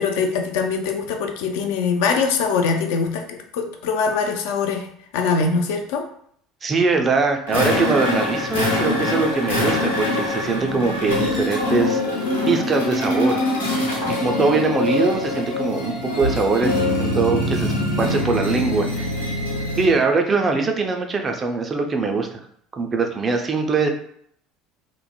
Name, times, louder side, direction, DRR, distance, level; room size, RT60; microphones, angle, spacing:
voice 1, 0.0-4.9 5.1-6.1 14.2-14.5, left 5 dB, 65° left, 4 dB, 0.3 m, -23 dB
voice 2, 6.6-12.0 12.5-13.4 14.0-16.7 17.0-17.7 18.0-19.1 19.7-22.4 22.8-23.9, right 4 dB, 30° right, 4 dB, 0.4 m, -22 dB
sound 1, 7.5-20.0, left 2 dB, 85° left, 0.9 m, -23 dB
3.0 x 2.0 x 2.2 m, 0.66 s
figure-of-eight pair, 65°, 0 cm